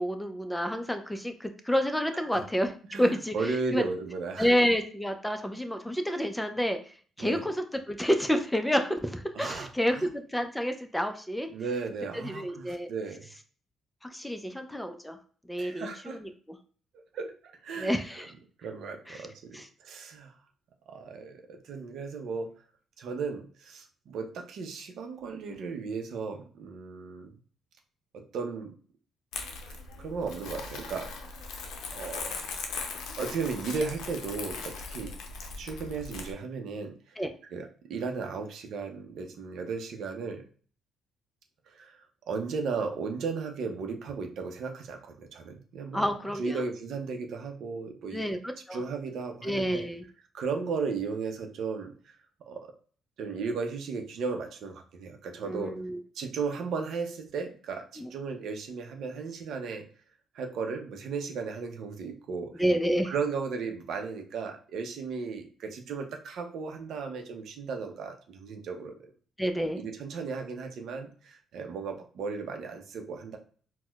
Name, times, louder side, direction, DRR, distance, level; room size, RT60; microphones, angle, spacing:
voice 1, 0.0-2.7 3.0-3.8 4.4-6.8 7.2-11.5 12.1-12.9 14.1-15.2 15.5-16.3 17.8-18.3 19.1-19.2 19.5-19.7 37.2-37.3 45.9-46.6 48.1-48.8 49.4-50.0 55.4-56.0 58.0-58.1 62.6-63.1 69.4-69.8, equal, 5° left, 7 dB, 0.5 m, -29 dB
voice 2, 2.9-4.5 7.2-7.4 9.3-9.7 10.0-10.1 11.5-13.3 15.6-16.2 16.9-18.0 18.6-20.3 20.9-22.5 23.0-27.3 28.1-28.7 30.0-31.4 31.9-32.4 33.2-35.1 35.6-37.1 37.5-40.4 41.7-46.1 46.4-48.3 48.7-49.9 50.3-51.9 52.5-52.7 53.2-55.7 56.1-59.8 60.3-62.6 63.0-69.1 69.8-73.4, right 5 dB, 70° right, 4 dB, 0.6 m, -35 dB
Crumpling crinkling, 29.3-36.3, left 4 dB, 80° left, 0.5 m, -39 dB
4.2 x 2.1 x 2.3 m, 0.43 s
supercardioid pair, 65°, 0 cm